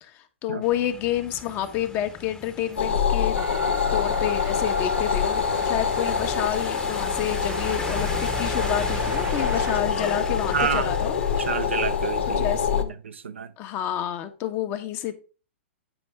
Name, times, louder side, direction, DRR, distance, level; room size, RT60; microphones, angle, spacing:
voice 1, 0.0-3.4 3.7-11.1 12.4-12.9 13.6-15.1, left 11 dB, 35° left, 1.1 m, -29 dB
sound 1, 0.6-12.8, left 1 dB, 15° left, 1.1 m, -37 dB
sound 2, 2.8-12.8, left 7 dB, 75° left, 1.1 m, -25 dB
Train, 3.4-9.8, right 9 dB, 20° right, 0.4 m, -39 dB
voice 2, 10.5-10.9 11.4-12.5 13.0-13.5, right 7 dB, 80° right, 0.8 m, -28 dB
9.1 x 5.2 x 3.5 m
hypercardioid pair, 110°, 7 cm